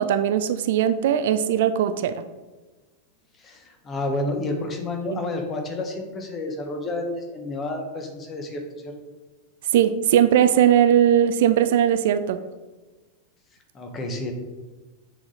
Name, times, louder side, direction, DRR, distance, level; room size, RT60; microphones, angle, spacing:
voice 1, 0.0-2.2 5.1-5.2 9.7-12.4, right 10 dB, 55° right, 11 dB, 0.3 m, -19 dB
voice 2, 3.4-8.9 13.7-14.3, left 2 dB, 25° left, 3 dB, 1.2 m, -30 dB
7.9 x 4.1 x 3.9 m, 1.2 s
figure-of-eight pair, 90°, 0 cm